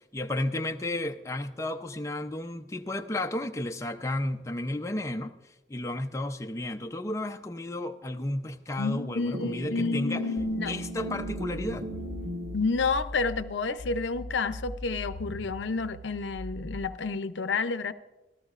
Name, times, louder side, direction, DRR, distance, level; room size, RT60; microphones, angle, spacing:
voice 1, 0.0-5.3 5.7-10.2 10.7-11.9, left 1 dB, 15° left, 4 dB, 0.5 m, -33 dB
voice 2, 8.8-10.7 12.5-17.9, left 4 dB, 80° left, 12 dB, 0.6 m, -30 dB
sound 1, 9.3-12.6, right 1 dB, 60° right, 1.7 m, -37 dB
sound 2, 10.4-13.4 13.8-16.8, left 1 dB, 80° right, 3.9 m, -41 dB
26.5 x 13.5 x 2.5 m, 1.1 s
head